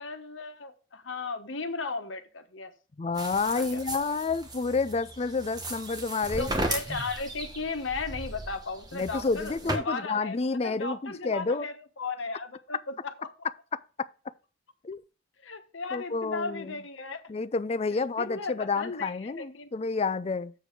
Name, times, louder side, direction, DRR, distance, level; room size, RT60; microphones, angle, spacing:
voice 1, 0.0-2.7 3.5-3.8 6.4-10.4 10.6-13.3 15.4-17.2 17.9-19.7, left 4 dB, 85° left, 1.1 m, -36 dB
voice 2, 3.0-6.5 8.9-11.7 14.8-15.0 15.9-16.8 17.3-20.5, left 4 dB, 35° left, 0.4 m, -29 dB
sound 1, 3.2-9.8, right 1 dB, 20° right, 1.3 m, -36 dB
7.8 x 4.6 x 5.1 m
head